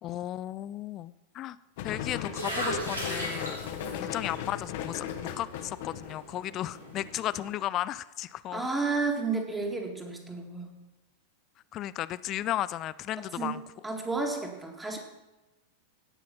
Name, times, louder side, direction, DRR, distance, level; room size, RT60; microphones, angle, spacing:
voice 1, 0.0-1.6 1.8-3.6 3.9-8.7 11.7-13.6, left 13 dB, 35° left, 17 dB, 0.3 m, -34 dB
sound 1, 1.8-7.2, left 9 dB, 50° left, 1.0 m, -38 dB
sound 2, 1.9-7.5, right 1 dB, 80° right, 2.7 m, -39 dB
voice 2, 3.8-4.2 8.5-10.8 13.1-13.6 13.8-15.0, right 3 dB, 10° right, 3 dB, 2.0 m, -32 dB
17.0 x 5.7 x 5.6 m, 1.1 s
figure-of-eight pair, 90°, 0 cm